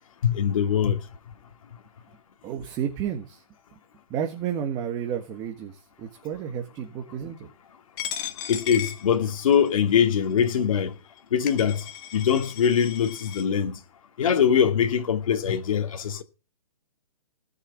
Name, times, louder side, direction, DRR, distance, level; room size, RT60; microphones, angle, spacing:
voice 1, 0.2-1.0 8.5-10.9 11.3-11.9 12.1-13.8 14.2-16.2, left 8 dB, 60° left, 2.6 m, -22 dB
voice 2, 2.4-3.4 4.1-7.5, right 9 dB, 20° right, 1.7 m, -31 dB
Coin (dropping), 8.0-9.7 10.4-10.5 11.2-11.3 11.5-13.4, left 10 dB, 35° left, 2.2 m, -36 dB
18.0 x 7.0 x 9.9 m
hypercardioid pair, 160°, 19 cm